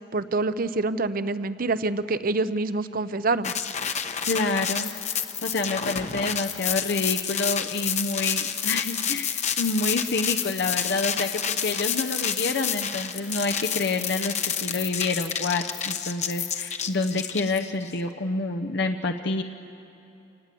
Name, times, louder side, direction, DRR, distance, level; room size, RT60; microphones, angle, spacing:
voice 1, 0.1-3.5, right 3 dB, 50° right, 13 dB, 0.7 m, -26 dB
sound 1, 3.4-17.9, left 8 dB, 40° left, 1.0 m, -29 dB
voice 2, 4.3-4.9 5.4-19.4, left 3 dB, 60° left, 5 dB, 0.8 m, -28 dB
28.0 x 19.5 x 8.4 m, 2.9 s
head